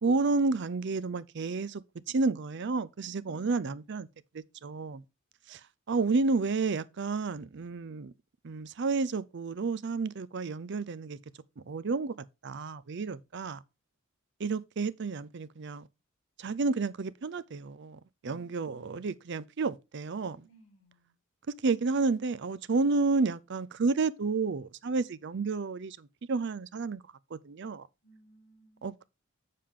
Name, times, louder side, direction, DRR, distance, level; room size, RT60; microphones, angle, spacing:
voice 1, 0.0-4.1 4.3-5.0 5.5-5.6 5.9-8.1 8.4-11.2 11.7-12.1 12.4-13.6 14.4-15.8 16.4-20.5 21.6-27.0 27.3-27.9 28.8-29.1, right 3 dB, 60° right, 0.5 m, -31 dB
voice 2, 20.4-21.2 28.0-28.9, right 2 dB, 75° left, 3.6 m, -61 dB
7.5 x 6.7 x 3.7 m
head